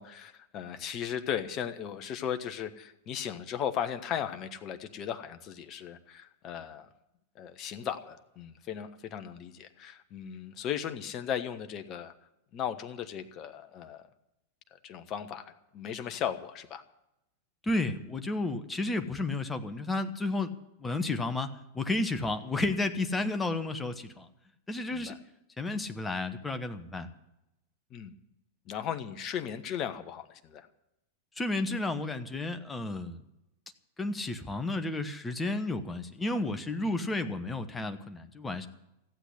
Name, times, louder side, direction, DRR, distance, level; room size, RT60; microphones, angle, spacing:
voice 1, 0.0-6.9 7.3-12.1 12.5-14.0 14.7-16.8 22.9-23.1 24.9-25.2 27.9-28.1 28.7-30.7 36.8-37.0, left 9 dB, 35° left, 9 dB, 1.1 m, -37 dB
voice 2, 17.6-20.5 20.8-24.3 24.7-25.1 25.6-27.1 31.4-33.2 34.0-38.7, left 2 dB, 10° left, 8 dB, 1.2 m, -32 dB
15.0 x 8.2 x 9.7 m, 0.89 s
figure-of-eight pair, 90°, 0 cm